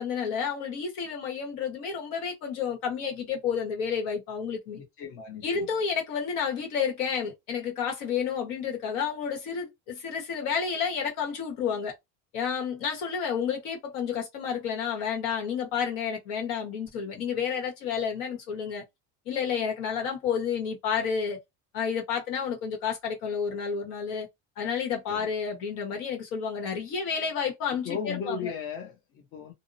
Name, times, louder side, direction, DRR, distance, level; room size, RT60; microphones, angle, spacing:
voice 1, 0.0-4.8 5.4-11.9 12.3-18.8 19.3-21.4 21.7-24.3 24.6-28.5, left 6 dB, 75° left, 1.3 m, -30 dB
voice 2, 4.8-5.7 25.1-25.3 27.8-29.5, left 6 dB, 45° left, 0.7 m, -36 dB
2.7 x 2.0 x 2.6 m
cardioid pair, 160°, 32 cm